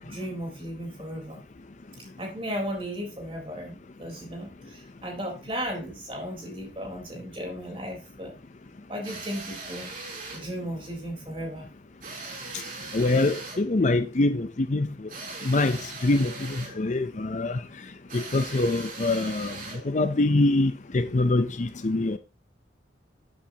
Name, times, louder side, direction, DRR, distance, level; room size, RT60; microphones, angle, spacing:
voice 1, 0.0-1.4 2.0-8.3 8.9-9.9 10.3-11.7, equal, 30° right, 3.9 m, -35 dB
sound 1, 9.0-10.5 12.0-13.7 15.1-16.8 18.1-19.9, right 3 dB, 45° right, 3.2 m, -39 dB
voice 2, 12.9-14.9 15.4-17.6 18.1-19.5 19.8-22.2, left 2 dB, 40° left, 0.5 m, -24 dB
13.0 x 8.9 x 2.9 m
head